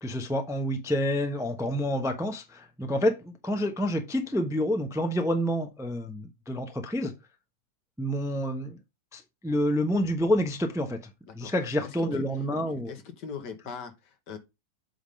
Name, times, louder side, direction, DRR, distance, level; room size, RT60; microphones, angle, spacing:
voice 1, 0.0-7.1 8.0-8.8 9.1-11.0 11.3-12.9, equal, 5° right, 0.6 m, -28 dB
voice 2, 12.5-14.4, left 6 dB, 75° left, 1.8 m, -41 dB
7.9 x 3.7 x 5.2 m
omnidirectional pair, 1.9 m